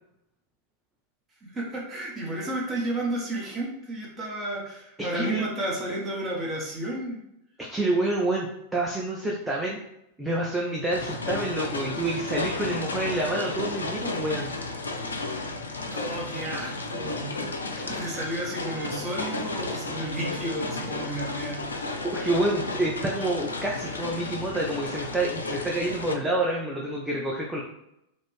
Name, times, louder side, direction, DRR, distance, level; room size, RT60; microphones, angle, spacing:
voice 1, 1.4-7.2 15.9-17.3 17.9-22.0, right 1 dB, 25° right, -3 dB, 0.8 m, -32 dB
voice 2, 5.0-5.4 7.6-9.8 10.2-14.5 22.0-27.6, right 1 dB, 10° right, -3 dB, 0.5 m, -28 dB
sound 1, 10.9-26.1, left 3 dB, 75° left, 0.3 m, -33 dB
2.5 x 2.4 x 3.5 m, 0.81 s
figure-of-eight pair, 90°, 0 cm